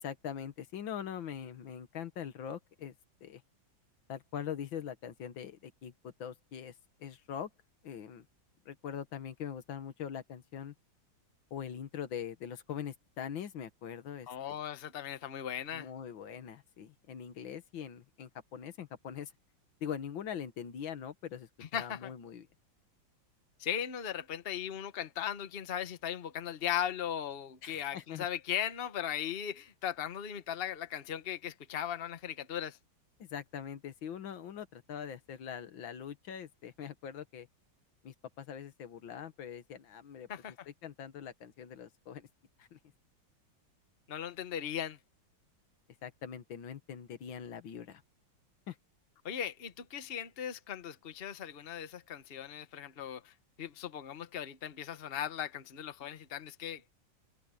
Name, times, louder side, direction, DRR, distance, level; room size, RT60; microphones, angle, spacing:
voice 1, 0.0-2.9 3.2-3.4 4.1-6.7 7.0-7.5 7.8-8.3 8.7-10.7 11.5-14.3 15.7-19.3 19.8-22.5 27.6-28.3 33.2-37.5 38.0-40.3 40.8-42.3 42.6-42.8 46.0-48.0 48.7-48.8, left 8 dB, 80° left, 2.0 m, -42 dB
voice 2, 14.3-15.9 21.6-22.1 23.6-32.8 40.3-40.5 44.1-45.0 49.2-57.0, left 9 dB, 35° left, 1.1 m, -38 dB
omnidirectional pair, 2.1 m